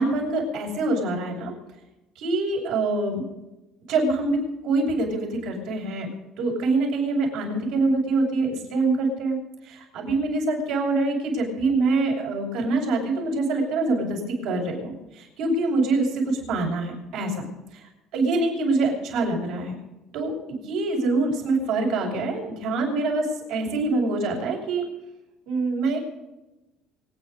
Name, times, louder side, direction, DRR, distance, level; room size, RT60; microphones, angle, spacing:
voice 1, 0.0-1.5 2.2-3.2 3.9-4.4 4.6-6.1 6.4-9.4 9.6-17.5 18.1-19.7 20.1-24.8 25.5-26.0, right 3 dB, 75° right, -1 dB, 6.9 m, -25 dB
25.5 x 9.2 x 5.4 m, 1.0 s
cardioid pair, 125°, 0 cm